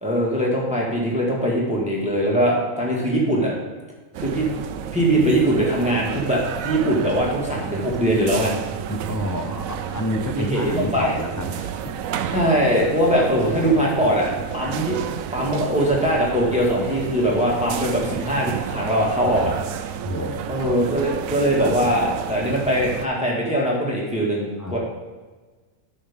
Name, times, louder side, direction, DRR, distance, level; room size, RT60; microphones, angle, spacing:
voice 1, 0.0-3.5 4.2-4.5 4.9-8.5 10.3-11.1 12.3-15.0 15.3-19.5 19.8-19.9 20.5-24.8, equal, 5° right, -4 dB, 1.7 m, -21 dB
sound 1, 4.1-23.1, right 9 dB, 80° right, 1.0 m, -31 dB
voice 2, 8.9-11.9 20.0-20.7 24.6-24.8, left 1 dB, 20° left, 3 dB, 0.5 m, -29 dB
12.5 x 5.9 x 3.6 m, 1.3 s
omnidirectional pair, 1.4 m